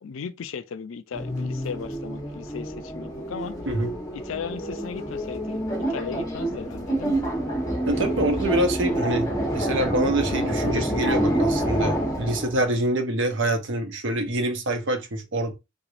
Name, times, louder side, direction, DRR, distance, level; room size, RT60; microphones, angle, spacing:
voice 1, 0.0-3.6 4.1-7.2, left 6 dB, 75° left, 0.4 m, -36 dB
sound 1, 1.1-12.6, right 1 dB, 20° left, 1.0 m, -27 dB
voice 2, 7.9-15.5, right 1 dB, 65° right, 0.8 m, -26 dB
3.5 x 3.2 x 2.5 m
head